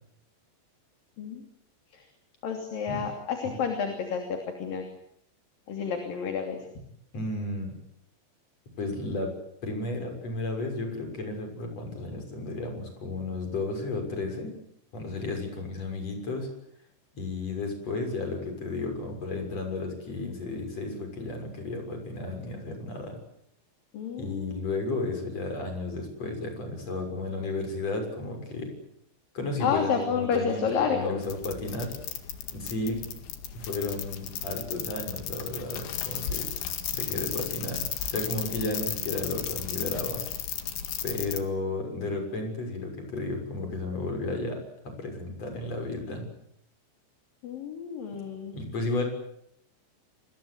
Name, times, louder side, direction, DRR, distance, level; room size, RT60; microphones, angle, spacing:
voice 1, 2.4-4.9 5.7-6.6 23.9-24.6 29.6-31.2 47.4-48.6, left 6 dB, 55° left, 4 dB, 4.5 m, -30 dB
voice 2, 7.1-7.8 8.8-9.3 9.6-14.5 14.9-16.5 17.1-23.2 24.2-28.7 29.3-31.9 32.5-33.0 33.5-36.5 36.9-40.2 41.0-46.3 48.5-49.0, left 2 dB, 35° left, 4 dB, 7.5 m, -33 dB
sound 1, 31.2-41.4, left 10 dB, 80° left, 4.2 m, -34 dB
29.5 x 21.5 x 8.0 m, 0.74 s
omnidirectional pair, 5.0 m